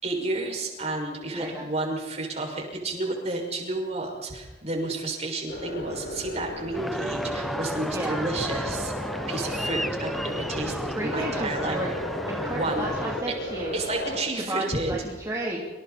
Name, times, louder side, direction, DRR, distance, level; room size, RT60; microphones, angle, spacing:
voice 1, 0.0-8.9 9.3-11.8 12.5-12.9 13.5-14.9, right 2 dB, 40° right, 1 dB, 6.4 m, -31 dB
voice 2, 1.3-1.7 7.9-8.2 10.9-12.0 12.3-13.8 14.3-15.6, right 1 dB, 20° right, -3 dB, 3.3 m, -32 dB
sound 1, 5.5-14.2, left 1 dB, 85° left, 7.9 m, -35 dB
sound 2, 6.7-13.2, equal, ahead, 0.6 m, -33 dB
27.5 x 27.0 x 4.4 m, 1.3 s
head